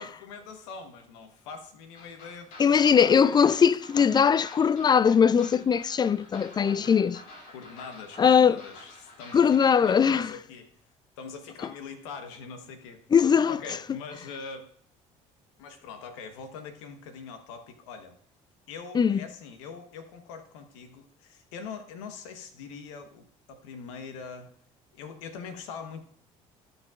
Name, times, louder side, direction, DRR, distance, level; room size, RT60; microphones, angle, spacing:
voice 1, 0.0-3.4 6.5-7.2 7.5-10.7 11.2-13.0 13.5-14.7 15.6-18.2 18.7-24.5 24.9-26.0, left 5 dB, 90° left, 1.0 m, -43 dB
sound 1, 1.9-10.3, left 2 dB, 70° left, 2.5 m, -49 dB
voice 2, 2.6-7.2 8.2-8.6 9.3-10.3 13.1-13.6 18.9-19.2, left 7 dB, 25° left, 0.4 m, -20 dB
16.0 x 5.4 x 2.4 m
supercardioid pair, 70°, 16 cm